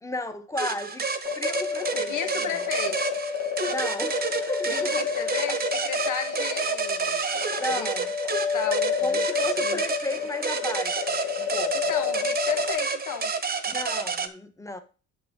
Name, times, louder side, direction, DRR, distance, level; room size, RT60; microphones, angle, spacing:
voice 1, 0.0-1.1 1.3-2.6 3.7-4.2 4.5-5.2 7.6-8.1 9.0-11.8 13.7-14.8, left 2 dB, 10° left, 1.2 m, -34 dB
sound 1, 0.6-14.3, right 5 dB, 30° right, 1.0 m, -30 dB
sound 2, 1.2-12.7, left 6 dB, 55° left, 1.4 m, -30 dB
voice 2, 1.9-3.0 4.7-7.2 7.7-7.9 8.5-9.3 9.6-9.8 11.7-13.3, left 8 dB, 85° left, 1.5 m, -33 dB
8.7 x 6.8 x 3.7 m
cardioid pair, 90°, 30 cm